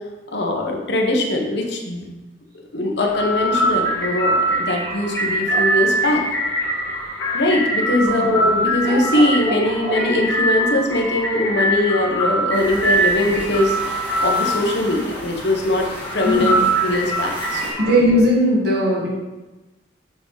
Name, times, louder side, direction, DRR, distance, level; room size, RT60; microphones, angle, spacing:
voice 1, 0.3-2.1 2.7-6.2 7.3-13.8 14.2-15.9 16.1-17.6, left 1 dB, 65° left, 1 dB, 1.3 m, -21 dB
sound 1, 3.0-17.9, right 1 dB, 15° left, 1.7 m, -23 dB
sound 2, 5.4-5.9 6.2-6.3 8.6-10.2, right 2 dB, 35° right, 0.6 m, -30 dB
sound 3, 12.5-17.7, equal, 10° right, 2.4 m, -34 dB
voice 2, 16.2-16.6 17.8-19.1, equal, 60° right, -3 dB, 1.9 m, -18 dB
6.7 x 6.2 x 4.1 m, 1.1 s
head